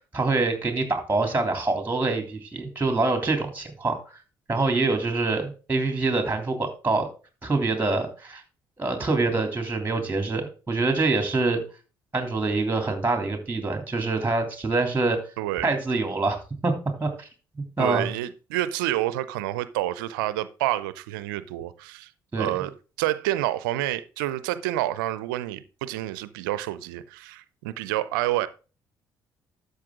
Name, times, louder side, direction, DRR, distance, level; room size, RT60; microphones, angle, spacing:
voice 1, 0.1-4.0 4.5-7.1 7.4-8.4 8.8-11.6 12.1-15.2 15.6-16.7 17.0-17.3 17.5-18.1 22.3-22.5, right 3 dB, 15° right, 3.0 m, -25 dB
voice 2, 15.4-15.7 17.8-22.1 22.4-22.7 23.0-28.5, right 15 dB, 85° right, 0.6 m, -28 dB
12.0 x 6.7 x 3.7 m
hypercardioid pair, 50°, 11 cm